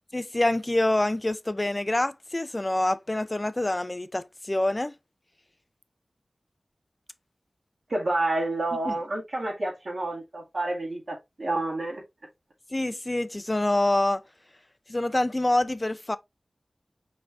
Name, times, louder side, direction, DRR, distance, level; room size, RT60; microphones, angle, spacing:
voice 1, 0.1-4.9 8.9-9.0 12.7-14.2 14.9-16.2, left 1 dB, 30° left, 0.4 m, -26 dB
voice 2, 7.9-12.0, right 2 dB, 65° right, 2.0 m, -29 dB
5.9 x 3.3 x 2.4 m
wide cardioid pair, 60°, 0 cm